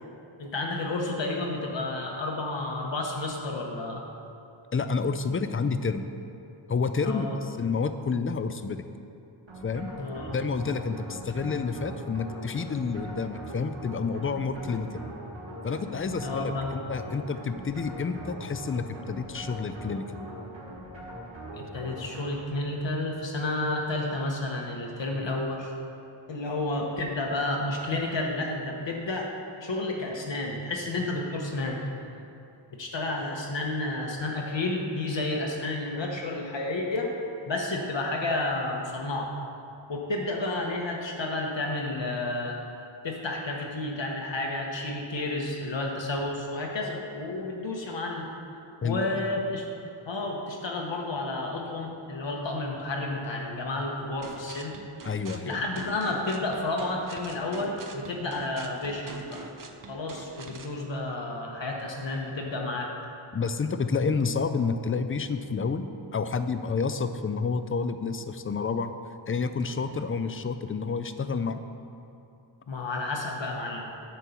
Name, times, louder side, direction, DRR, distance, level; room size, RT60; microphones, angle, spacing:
voice 1, 0.4-4.0 7.0-7.4 10.0-10.3 16.2-16.8 21.5-25.7 26.3-29.3 29.6-31.8 32.7-37.1 37.5-39.3 39.9-42.6 43.0-48.3 48.8-49.7 50.1-55.1 55.4-59.5 59.8-62.9 72.7-73.9, left 2 dB, 60° left, -1 dB, 1.1 m, -31 dB
voice 2, 4.7-6.0 6.7-8.8 9.6-9.9 10.3-15.0 15.6-20.2 48.8-49.1 55.1-55.6 63.3-65.9 66.1-68.9 69.3-71.6, left 5 dB, 30° left, 10 dB, 0.4 m, -29 dB
sound 1, 9.5-22.7, right 1 dB, 60° right, 2.1 m, -41 dB
sound 2, 54.2-60.8, right 3 dB, 40° right, 0.6 m, -44 dB
9.9 x 4.6 x 6.9 m, 2.7 s
wide cardioid pair, 115°, 50 cm